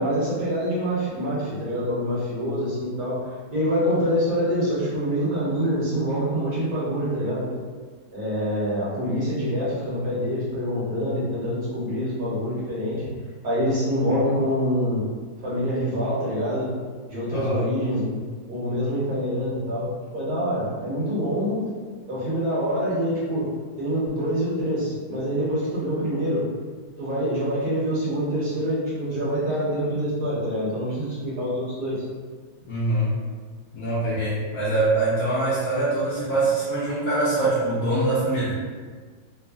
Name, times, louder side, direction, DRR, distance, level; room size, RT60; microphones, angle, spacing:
voice 1, 0.0-3.3 3.5-7.5 8.1-13.0 13.4-15.1 15.4-16.7 17.1-18.2 18.5-21.6 22.1-23.5 23.8-26.4 27.0-32.0, equal, 60° right, -8 dB, 1.2 m, -25 dB
voice 2, 17.3-17.6 32.6-33.1 33.7-38.5, right 2 dB, 65° left, -9 dB, 0.9 m, -23 dB
3.1 x 2.0 x 2.3 m, 1.5 s
omnidirectional pair, 2.0 m